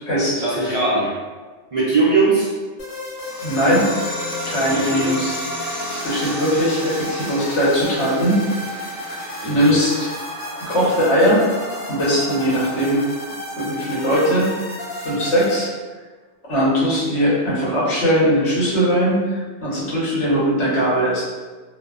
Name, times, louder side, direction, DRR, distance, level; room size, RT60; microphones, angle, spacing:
voice 1, 0.4-1.2 1.7-2.5 4.7-5.1 9.4-9.7, right 3 dB, 65° right, -9 dB, 0.3 m, -20 dB
sound 1, 2.8-15.7, left 1 dB, 60° left, 1.0 m, -33 dB
sound 2, 3.2-14.2, equal, 25° left, 0.7 m, -33 dB
voice 2, 3.4-3.9 4.4-5.8 6.0-8.4 9.4-10.1 10.6-11.4 11.9-13.0 13.5-14.5 15.0-15.7 16.4-21.3, equal, 75° left, -8 dB, 1.3 m, -19 dB
2.7 x 2.1 x 2.3 m, 1.3 s
omnidirectional pair, 1.2 m